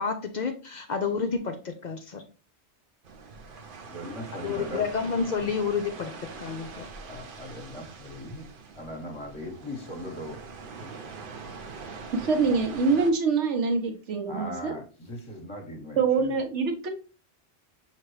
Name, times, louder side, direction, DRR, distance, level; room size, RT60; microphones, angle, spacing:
voice 1, 0.0-2.2 4.4-6.1 6.4-6.9, left 5 dB, 55° left, 5 dB, 0.5 m, -29 dB
sound 1, 3.0-13.1, right 4 dB, 55° right, 0.7 m, -43 dB
voice 2, 3.9-4.9 5.4-5.5 7.0-8.5 8.7-11.0 14.3-16.3, left 1 dB, 25° left, 1 dB, 1.0 m, -39 dB
voice 3, 12.1-14.7 16.0-16.9, right 4 dB, 80° right, 5 dB, 1.2 m, -25 dB
5.8 x 2.9 x 3.1 m, 0.35 s
omnidirectional pair, 1.2 m